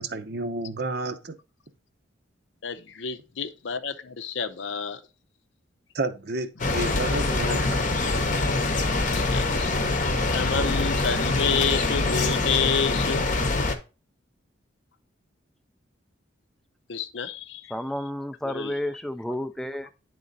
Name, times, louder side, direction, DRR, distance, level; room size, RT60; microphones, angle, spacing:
voice 1, 0.0-1.3 5.9-8.4, right 3 dB, 55° right, 0.7 m, -31 dB
voice 2, 2.6-5.0 9.1-9.7 10.2-13.3 16.9-17.7 18.4-18.8, left 6 dB, 65° left, 0.6 m, -29 dB
sound 1, 6.6-13.7, left 2 dB, 40° left, 0.8 m, -24 dB
voice 3, 17.7-19.9, left 1 dB, ahead, 0.4 m, -31 dB
9.6 x 3.7 x 3.9 m
head